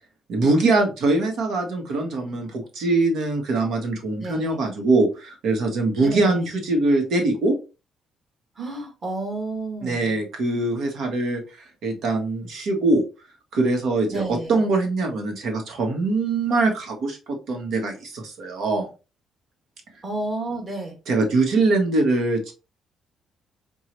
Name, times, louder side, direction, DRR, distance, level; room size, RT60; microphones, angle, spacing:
voice 1, 0.3-7.6 9.8-13.0 13.5-14.2 14.5-18.9 21.1-22.5, right 2 dB, 75° right, 3 dB, 1.2 m, -22 dB
voice 2, 4.2-4.6 6.0-6.5 8.6-10.2 14.1-14.6 20.0-21.0, right 2 dB, 40° right, 1 dB, 1.9 m, -31 dB
4.5 x 2.4 x 3.0 m, 0.30 s
cardioid pair, 90°, 0 cm